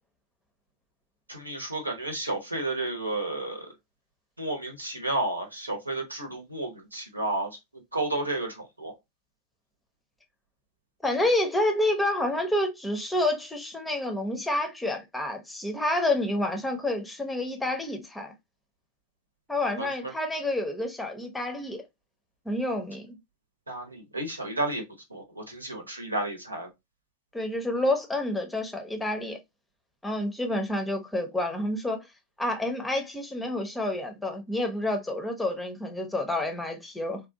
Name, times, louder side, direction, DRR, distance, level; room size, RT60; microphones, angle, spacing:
voice 1, 1.3-3.7 4.4-7.5 7.9-8.9 19.8-19.9 23.7-24.8 25.1-26.7, right 2 dB, 85° right, 0.9 m, -32 dB
voice 2, 11.0-18.3 19.5-21.8 22.5-23.2 27.3-29.4 30.0-32.1 32.4-37.2, left 1 dB, 5° left, 0.7 m, -29 dB
3.4 x 2.3 x 2.7 m
figure-of-eight pair, 90°, 0 cm